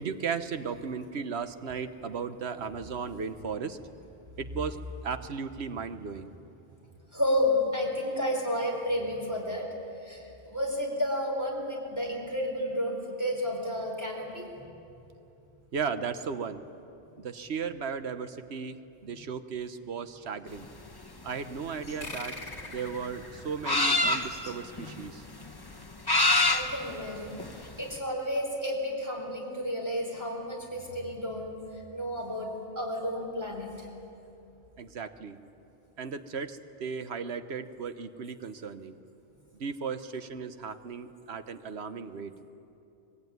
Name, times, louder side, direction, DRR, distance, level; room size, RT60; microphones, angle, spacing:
voice 1, 0.0-3.8 4.4-4.8 5.0-6.3 15.7-16.6 17.2-20.7 21.2-22.4 22.7-25.3 34.8-35.4 36.0-39.0 39.5-42.3, right 6 dB, 75° right, 10 dB, 1.3 m, -36 dB
voice 2, 7.1-9.6 10.0-14.5 26.5-27.4 27.8-31.6 31.9-32.5 32.8-33.9, left 1 dB, 15° right, -2 dB, 4.4 m, -31 dB
sound 1, 20.6-27.9, left 2 dB, 20° left, 1.2 m, -28 dB
sound 2, 22.0-25.0, left 2 dB, 40° left, 3.2 m, -44 dB
25.5 x 21.0 x 9.5 m, 2.8 s
omnidirectional pair, 1.1 m